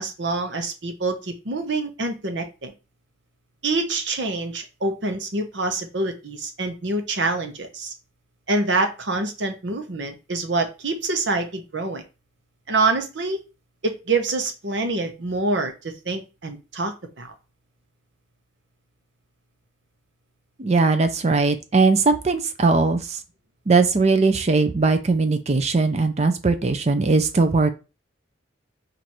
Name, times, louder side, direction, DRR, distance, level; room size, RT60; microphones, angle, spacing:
voice 1, 0.0-2.7 3.6-7.9 8.5-12.0 12.7-13.4 13.8-17.3, right 3 dB, 70° right, 5 dB, 0.9 m, -26 dB
voice 2, 20.6-23.2 23.7-27.7, right 3 dB, 35° right, 8 dB, 0.5 m, -19 dB
4.6 x 2.6 x 4.3 m, 0.30 s
head